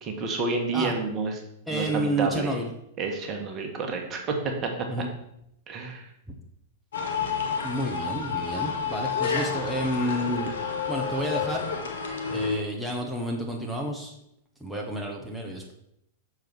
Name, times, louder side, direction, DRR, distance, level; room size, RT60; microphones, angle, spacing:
voice 1, 0.0-1.4 1.7-2.6 3.0-4.7 5.0-5.1 5.7-6.0, right 4 dB, 35° right, 3 dB, 1.6 m, -29 dB
voice 2, 1.7-2.7 4.9-5.1 6.3-6.4 7.6-10.5 10.9-11.7 12.3-14.2 14.6-15.7, right 1 dB, ahead, -2 dB, 1.4 m, -30 dB
sound 1, 6.9-12.6, left 6 dB, 70° left, 1.4 m, -30 dB
6.9 x 4.8 x 6.2 m, 0.77 s
figure-of-eight pair, 100°, 0 cm